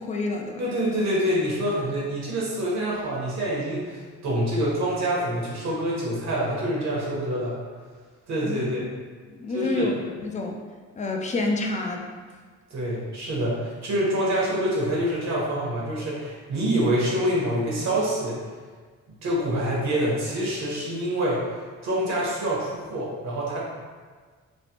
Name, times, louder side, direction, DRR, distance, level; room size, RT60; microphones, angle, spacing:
voice 1, 0.0-0.7 8.4-8.6 9.3-9.9 10.2-10.6 11.0-12.1, left 2 dB, 25° left, 1 dB, 0.4 m, -28 dB
voice 2, 0.6-7.5 8.3-8.8 9.5-9.9 12.7-18.4 19.2-21.4 21.8-23.6, equal, 65° right, -5 dB, 1.1 m, -26 dB
3.1 x 2.0 x 2.8 m, 1.5 s
cardioid pair, 90°, 30 cm